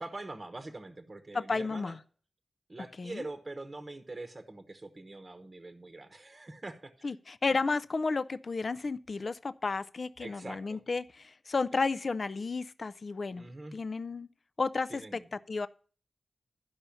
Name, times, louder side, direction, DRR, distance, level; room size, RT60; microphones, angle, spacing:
voice 1, 0.0-2.0 2.7-7.1 10.2-10.8 13.4-13.8 14.9-15.2, right 2 dB, 30° right, 1.0 m, -44 dB
voice 2, 1.3-2.0 3.0-3.3 7.0-13.4 13.7-14.3 14.6-15.7, left 4 dB, 45° left, 0.4 m, -32 dB
11.5 x 5.5 x 7.0 m
wide cardioid pair, 125°, 0 cm